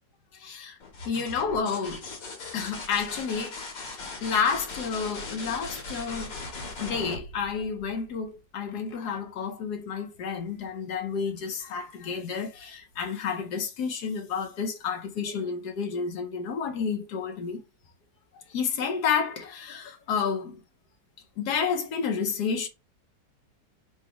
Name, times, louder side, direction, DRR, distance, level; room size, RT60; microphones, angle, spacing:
voice 1, 0.3-0.8 1.1-2.0 2.5-3.6 4.2-6.3 6.8-17.6 18.5-20.6 21.4-22.7, left 6 dB, 70° left, 1.4 m, -30 dB
sound 1, 0.8-8.4 10.2-10.7, left 3 dB, 85° left, 1.9 m, -39 dB
4.1 x 2.3 x 4.6 m
omnidirectional pair, 1.9 m